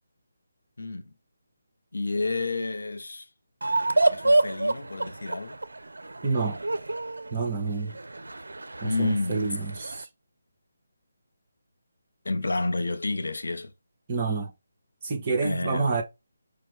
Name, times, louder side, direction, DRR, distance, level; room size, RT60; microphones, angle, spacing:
voice 1, 0.8-1.1 1.9-3.3 4.1-5.6 8.8-9.4 12.2-13.7 15.4-15.9, left 3 dB, 85° left, 0.7 m, -30 dB
sound 1, 3.6-10.0, right 2 dB, 90° right, 0.4 m, -28 dB
voice 2, 6.2-6.6 7.3-8.0 8.8-10.1 14.1-14.5 15.0-16.0, right 4 dB, 30° right, 0.9 m, -28 dB
4.9 x 2.1 x 3.2 m
figure-of-eight pair, 160°, 0 cm